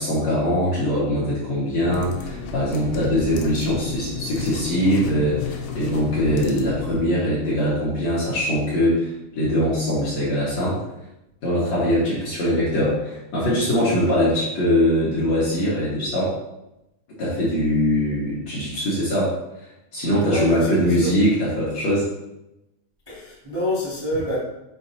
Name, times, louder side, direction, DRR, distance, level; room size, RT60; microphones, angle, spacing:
voice 1, 0.0-10.8 11.4-16.4 17.2-19.3 19.9-22.1, equal, 55° left, -8 dB, 2.1 m, -22 dB
sound 1, 1.8-7.1, left 5 dB, 85° left, 3.2 m, -32 dB
voice 2, 20.3-21.1 23.0-24.4, left 1 dB, 35° right, -10 dB, 0.4 m, -27 dB
7.5 x 5.8 x 2.8 m, 0.91 s
omnidirectional pair, 5.3 m